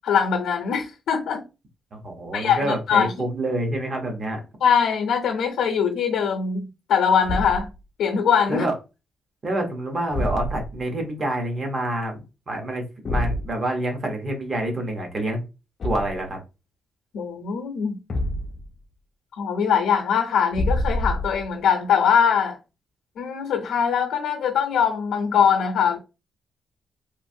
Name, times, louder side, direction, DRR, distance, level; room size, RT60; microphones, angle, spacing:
voice 1, 0.0-1.4 2.3-3.1 4.6-7.7 8.0-8.6 17.1-18.0 19.4-22.6 23.2-26.0, left 7 dB, 85° left, 0.6 m, -22 dB
voice 2, 1.9-4.4 8.5-8.7 9.4-15.4 15.8-16.4, right 1 dB, 30° right, 0.8 m, -27 dB
Thump thud, 7.2-7.8 10.1-10.8 13.1-13.5 15.8-16.3 18.1-18.7 20.5-21.5, left 1 dB, 35° left, 0.4 m, -26 dB
3.0 x 2.5 x 2.6 m
wide cardioid pair, 180°, 0 cm